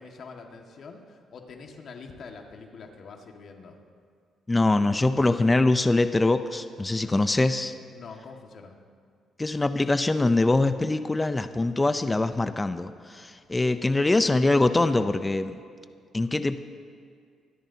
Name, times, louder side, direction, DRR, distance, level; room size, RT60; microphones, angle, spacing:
voice 1, 0.0-3.8 7.0-7.2 7.9-8.8, left 4 dB, 60° left, 2 dB, 1.9 m, -45 dB
voice 2, 4.5-7.7 9.4-15.6 16.1-16.6, left 2 dB, 20° left, 10 dB, 0.6 m, -23 dB
25.5 x 13.0 x 2.9 m, 2.2 s
cardioid pair, 90°, 0 cm